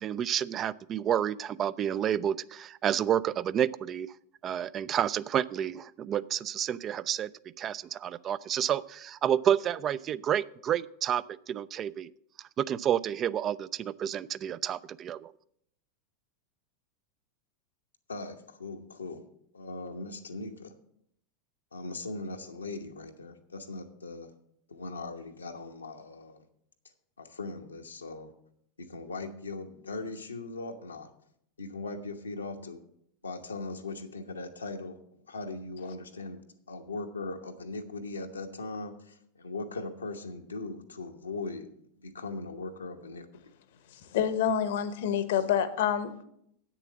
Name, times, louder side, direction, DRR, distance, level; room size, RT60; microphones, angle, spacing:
voice 1, 0.0-4.1 4.4-7.3 7.6-12.1 12.6-15.3, right 9 dB, 35° right, 18 dB, 0.3 m, -30 dB
voice 2, 18.1-19.2 19.5-20.7 21.7-24.3 24.7-26.4 27.2-28.3 28.8-31.1 31.6-32.8 33.2-35.0 35.3-36.4 36.7-41.7 42.0-43.3, left 3 dB, 85° left, 4 dB, 1.0 m, -39 dB
voice 3, 44.1-46.2, left 9 dB, 65° left, 13 dB, 0.9 m, -27 dB
8.3 x 6.9 x 7.3 m, 0.71 s
figure-of-eight pair, 90°, 0 cm